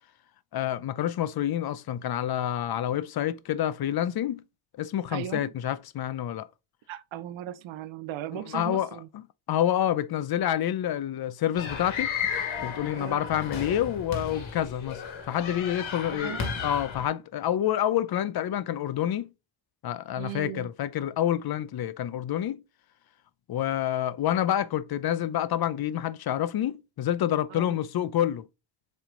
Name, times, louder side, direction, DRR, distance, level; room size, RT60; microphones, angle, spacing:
voice 1, 0.5-4.4 4.8-6.5 8.5-9.2 9.5-12.1 12.6-19.3 19.8-22.6 23.5-28.5, left 11 dB, 50° left, 0.6 m, -28 dB
voice 2, 5.1-5.5 6.9-9.1 12.9-13.2 16.0-16.7 20.2-20.7 27.5-27.8, right 11 dB, 70° right, 0.8 m, -37 dB
sound 1, 11.6-17.1, left 6 dB, 80° left, 2.1 m, -34 dB
7.4 x 3.5 x 3.8 m
cardioid pair, 130°, 48 cm